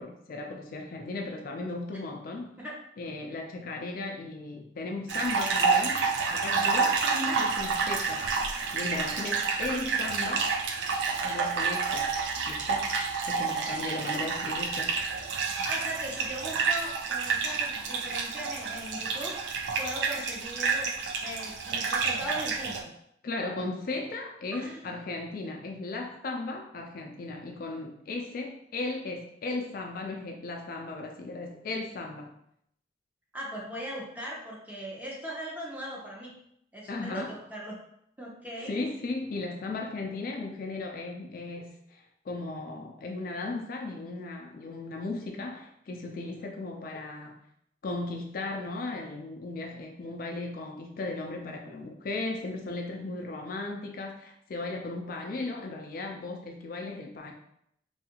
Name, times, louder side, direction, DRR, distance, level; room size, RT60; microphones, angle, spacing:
voice 1, 0.0-2.5 3.0-6.0 6.3-8.2 8.7-10.5 11.2-12.1 12.5-12.9 13.3-14.9 23.2-32.3 36.9-37.3 38.6-47.4 47.8-57.3, left 2 dB, 50° left, 2 dB, 0.3 m, -36 dB
sound 1, 5.1-22.8, right 5 dB, 75° right, 0.4 m, -29 dB
voice 2, 13.9-14.3 15.6-20.9 21.2-22.9 24.5-24.9 33.3-36.3 36.7-37.7 38.2-38.8, equal, 10° right, -4 dB, 0.6 m, -39 dB
2.6 x 2.4 x 2.8 m, 0.74 s
head